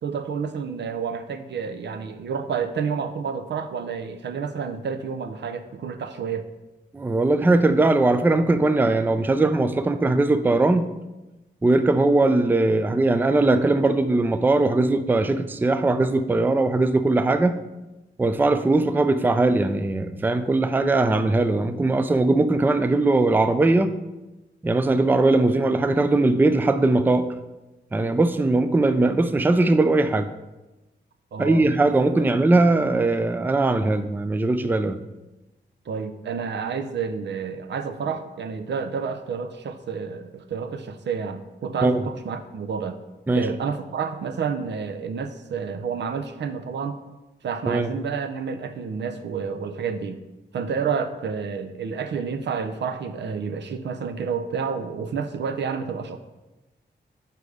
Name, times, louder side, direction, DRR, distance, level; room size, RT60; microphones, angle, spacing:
voice 1, 0.0-6.5 31.3-31.7 35.9-43.0 43.3-47.0 47.4-50.2 50.5-56.2, right 6 dB, 75° right, 9 dB, 0.6 m, -29 dB
voice 2, 6.9-10.9 11.6-17.6 18.2-23.9 24.6-27.2 27.9-30.3 31.4-35.0 41.8-42.0 43.3-43.5 47.7-47.9, right 2 dB, 10° right, 10 dB, 0.3 m, -20 dB
6.7 x 5.1 x 4.8 m, 1.1 s
wide cardioid pair, 120°, 18 cm